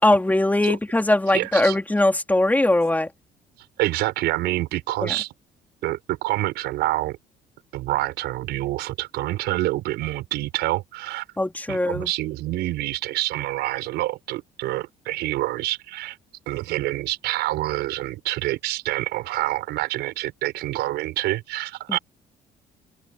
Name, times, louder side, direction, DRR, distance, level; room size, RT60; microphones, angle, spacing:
voice 1, 0.0-3.1 5.0-5.1 11.4-12.1 21.9-22.0, left 1 dB, 10° left, 2.9 m, -20 dB
voice 2, 1.3-1.8 3.8-5.3 5.8-7.2 7.7-11.2 11.7-16.2 16.5-22.0, right 17 dB, 85° right, 5.4 m, -27 dB
cardioid pair, 110°, 17 cm